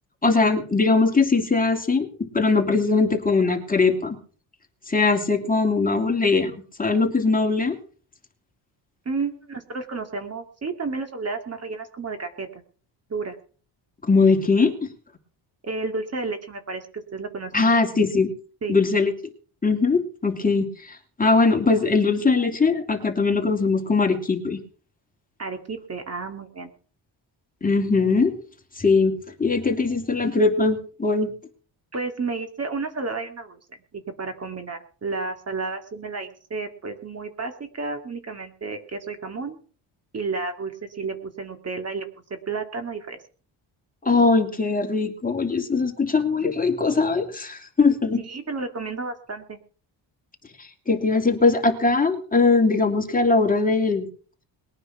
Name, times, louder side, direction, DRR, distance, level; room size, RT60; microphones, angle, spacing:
voice 1, 0.2-2.1 2.3-4.2 4.9-6.5 6.8-7.8 14.0-14.9 17.5-18.3 18.7-19.1 19.6-24.6 27.6-28.4 28.8-29.1 29.4-31.3 44.0-48.2 50.9-54.1, left 4 dB, 20° left, 3 dB, 2.9 m, -20 dB
voice 2, 9.1-12.6 13.1-13.4 15.6-17.7 18.6-18.8 25.4-26.7 31.9-39.6 40.1-42.1 42.5-43.2 48.2-49.6, right 4 dB, 35° right, 7 dB, 2.5 m, -31 dB
21.0 x 9.7 x 5.9 m, 0.42 s
cardioid pair, 110°, 45 cm